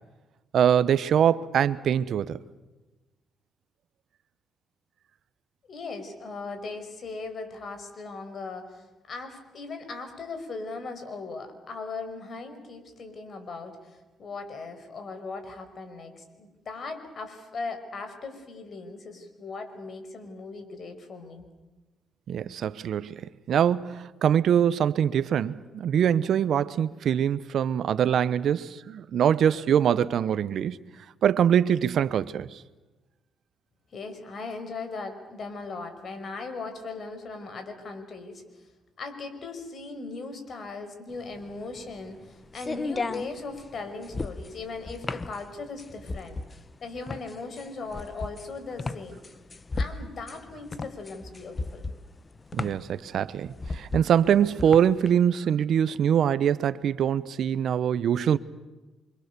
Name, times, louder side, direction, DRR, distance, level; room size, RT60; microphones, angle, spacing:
voice 1, 0.5-2.4 22.3-23.2 23.5-30.8 31.2-32.6 52.5-58.4, right 9 dB, 65° right, 0.9 m, -23 dB
voice 2, 5.7-21.5 33.9-38.4 39.0-46.4 46.8-49.2 49.8-51.8, left 3 dB, 50° left, 5.4 m, -38 dB
sound 1, 41.2-55.1, left 3 dB, 30° left, 1.0 m, -35 dB
29.0 x 25.0 x 6.9 m
cardioid pair, 90°, 0 cm